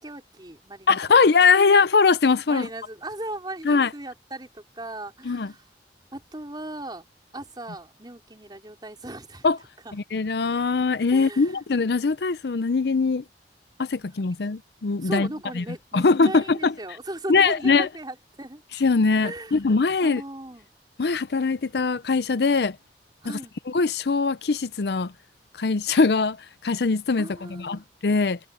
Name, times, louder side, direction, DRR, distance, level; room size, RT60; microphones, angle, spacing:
voice 1, 0.0-1.8 2.5-5.7 6.1-7.1 7.3-9.5 9.8-10.0 11.1-11.6 15.0-18.6 19.2-19.5 20.0-20.7 23.2-23.5 27.2-27.8, right 1 dB, 25° right, 4.3 m, -37 dB
voice 2, 0.9-2.7 3.7-3.9 5.2-5.5 9.4-9.6 9.9-13.2 13.8-15.3 15.6-15.7 15.9-16.7 17.3-17.9 18.8-20.2 21.0-22.8 23.7-25.1 25.6-26.4 26.6-28.4, left 4 dB, 65° left, 0.6 m, -21 dB
head